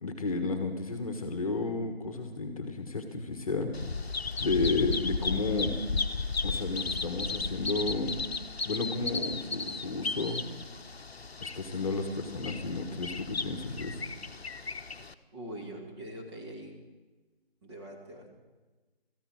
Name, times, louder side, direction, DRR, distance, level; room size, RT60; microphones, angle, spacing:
voice 1, 0.0-3.7 4.4-5.8 6.4-8.2 8.6-10.5 11.4-14.0, left 3 dB, 35° left, 6 dB, 1.4 m, -32 dB
Bird vocalization bird call bird song, 3.7-15.1, left 4 dB, 75° left, 0.9 m, -35 dB
voice 2, 15.3-16.8 17.6-18.3, right 1 dB, 25° right, 0 dB, 2.5 m, -43 dB
18.5 x 14.0 x 4.7 m, 1.2 s
figure-of-eight pair, 160°, 31 cm